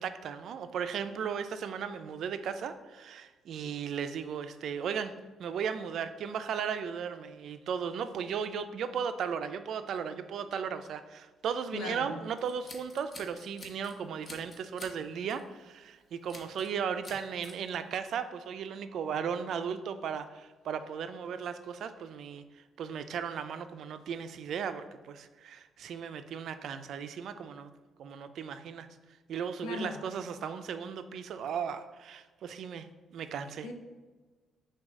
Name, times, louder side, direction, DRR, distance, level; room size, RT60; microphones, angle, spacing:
voice 1, 0.0-5.1 5.4-27.7 28.0-28.9 29.3-32.9 33.1-33.7, right 7 dB, 70° right, 10 dB, 0.3 m, -36 dB
voice 2, 11.7-12.1 29.6-30.0 33.6-33.7, left 4 dB, 90° left, 4 dB, 0.6 m, -38 dB
Scissors, 12.4-13.9 14.2-15.0 15.3-15.5 16.3-16.7 17.0-17.5, left 2 dB, 40° left, 0.9 m, -48 dB
6.0 x 2.3 x 3.6 m, 1.3 s
cardioid pair, 90°, 0 cm